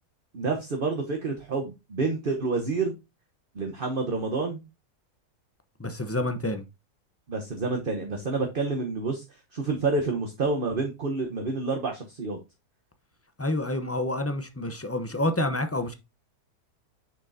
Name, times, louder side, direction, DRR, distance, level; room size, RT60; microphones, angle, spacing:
voice 1, 0.3-3.0 3.5-4.6 7.3-12.4, right 3 dB, 40° right, 1.1 m, -28 dB
voice 2, 5.8-6.6 13.4-15.9, left 1 dB, 15° left, 0.4 m, -28 dB
7.1 x 6.1 x 2.7 m
omnidirectional pair, 1.7 m